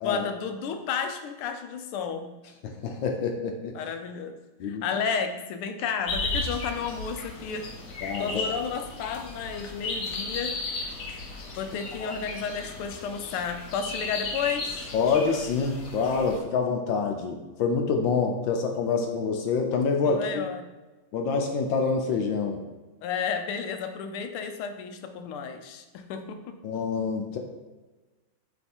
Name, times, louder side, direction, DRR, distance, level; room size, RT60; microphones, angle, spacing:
voice 1, 0.0-2.3 3.7-7.7 8.2-10.6 11.6-14.9 20.0-20.7 23.0-26.6, left 6 dB, 85° left, 7 dB, 1.5 m, -32 dB
voice 2, 2.6-3.8 4.6-4.8 8.0-8.3 12.0-12.1 14.9-20.4 21.1-22.6 26.6-27.4, left 5 dB, 70° left, 3 dB, 1.4 m, -26 dB
sound 1, 6.1-16.4, left 3 dB, 55° left, 1.0 m, -35 dB
7.7 x 3.2 x 4.3 m, 1.2 s
omnidirectional pair, 2.3 m